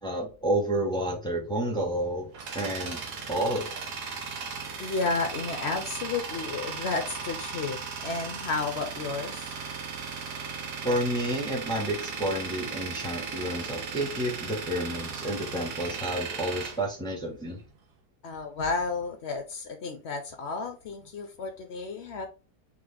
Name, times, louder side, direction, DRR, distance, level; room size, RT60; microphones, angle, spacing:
voice 1, 0.0-2.3 2.5-3.0 3.3-3.7 10.8-17.6, right 1 dB, 5° left, 0.8 m, -30 dB
Tools, 1.9-17.7, right 5 dB, 75° right, 1.5 m, -37 dB
voice 2, 4.8-9.5 18.2-22.3, left 4 dB, 65° left, 0.6 m, -32 dB
4.0 x 3.2 x 3.4 m
omnidirectional pair, 1.8 m